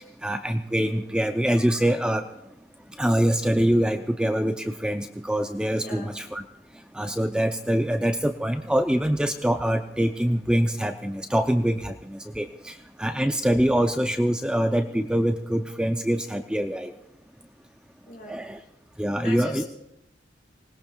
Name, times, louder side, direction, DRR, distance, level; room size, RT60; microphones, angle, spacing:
voice 1, 0.2-2.3 3.0-6.4 6.9-16.9 18.3-18.6 19.0-19.6, equal, 5° right, 6 dB, 0.4 m, -24 dB
voice 2, 5.8-6.1 18.1-18.4 19.2-19.7, left 1 dB, 50° left, -1 dB, 4.8 m, -38 dB
25.5 x 19.5 x 2.3 m, 0.85 s
head